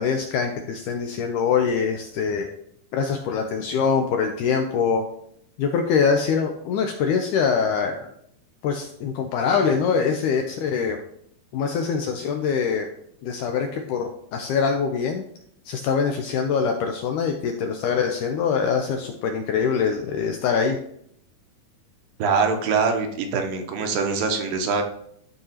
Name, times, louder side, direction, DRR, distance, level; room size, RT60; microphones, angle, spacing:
voice 1, 0.0-2.5 2.9-5.1 5.6-8.1 8.6-11.0 11.5-12.9 13.2-15.2 15.7-20.8, left 6 dB, 85° left, 4 dB, 1.8 m, -24 dB
voice 2, 22.2-24.8, right 5 dB, 75° right, 4 dB, 2.4 m, -23 dB
13.5 x 4.7 x 2.9 m, 0.71 s
omnidirectional pair, 4.3 m